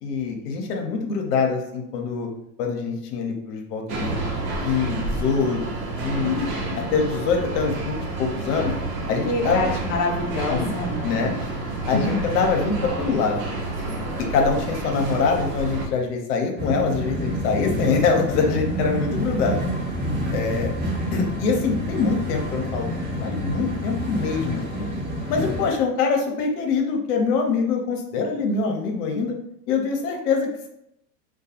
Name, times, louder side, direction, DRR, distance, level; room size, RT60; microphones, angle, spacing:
voice 1, 0.0-2.3 2.6-4.1 4.6-5.6 6.0-6.3 6.9-8.7 9.1-9.7 10.5-10.7 11.0-11.3 11.9-13.4 14.3-19.6 20.3-20.7 21.1-24.9 25.3-29.3 29.7-30.7, left 5 dB, 65° left, 2 dB, 0.7 m, -24 dB
sound 1, 3.9-15.9, right 2 dB, 70° right, 0.9 m, -29 dB
voice 2, 6.2-6.8 9.2-11.3 11.9-12.2, left 3 dB, 35° left, 0 dB, 0.5 m, -27 dB
sound 2, 16.6-25.7, equal, 20° right, 0.8 m, -28 dB
2.3 x 2.3 x 2.7 m, 0.80 s
hypercardioid pair, 100°, 49 cm